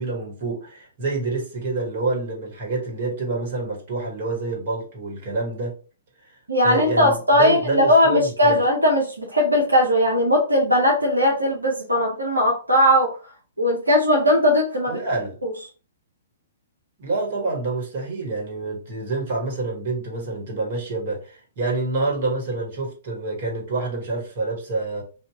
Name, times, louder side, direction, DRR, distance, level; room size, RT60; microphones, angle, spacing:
voice 1, 0.0-5.7 6.6-8.6 14.9-15.3 17.0-25.0, right 3 dB, 50° right, -1 dB, 1.5 m, -27 dB
voice 2, 6.5-13.1 13.6-15.0 15.4-15.5, left 1 dB, 90° right, -2 dB, 0.8 m, -19 dB
2.8 x 2.4 x 3.6 m, 0.36 s
figure-of-eight pair, 120°, 0 cm